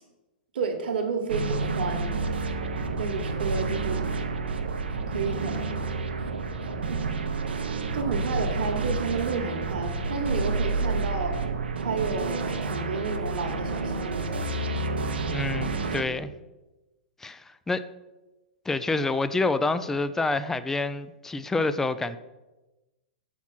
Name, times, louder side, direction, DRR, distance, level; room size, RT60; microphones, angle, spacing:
voice 1, 0.5-2.1 3.0-4.0 5.1-5.7 6.7-7.0 7.9-11.4 11.8-14.4 16.1-16.2, right 4 dB, 70° right, 1.3 m, -31 dB
sound 1, 1.3-16.0, right 3 dB, 85° right, 0.7 m, -29 dB
voice 2, 15.3-16.3 17.2-17.8 18.7-22.2, left 3 dB, 5° left, 0.3 m, -27 dB
5.8 x 4.4 x 5.9 m
hypercardioid pair, 125°, 5 cm